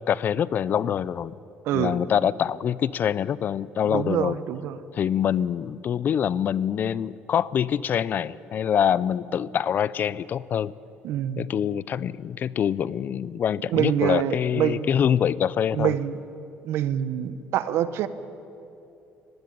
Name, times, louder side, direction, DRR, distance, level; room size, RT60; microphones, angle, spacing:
voice 1, 0.0-1.3 1.7-4.4 4.9-10.7 11.4-16.0, left 9 dB, 45° left, 20 dB, 0.5 m, -25 dB
voice 2, 1.6-2.0 3.8-4.8 11.0-11.5 13.7-14.9 15.7-16.2 16.6-18.1, right 10 dB, 70° right, 14 dB, 1.0 m, -26 dB
19.5 x 16.0 x 9.4 m, 2.8 s
cardioid pair, 135°, 4 cm